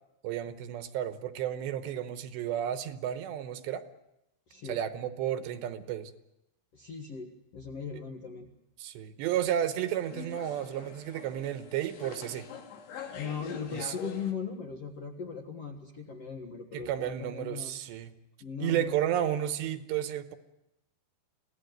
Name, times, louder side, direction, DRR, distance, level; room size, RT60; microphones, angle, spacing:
voice 1, 0.2-3.8 4.7-6.1 8.8-12.5 13.7-14.0 16.7-18.1 18.6-20.4, right 11 dB, 75° right, 10 dB, 3.1 m, -32 dB
voice 2, 4.5-4.8 6.7-8.5 13.1-17.8 18.4-18.9, left 6 dB, 60° left, 2 dB, 1.7 m, -39 dB
sound 1, 9.3-14.3, left 7 dB, 85° left, 4.7 m, -45 dB
26.0 x 17.0 x 9.4 m, 0.91 s
omnidirectional pair, 5.2 m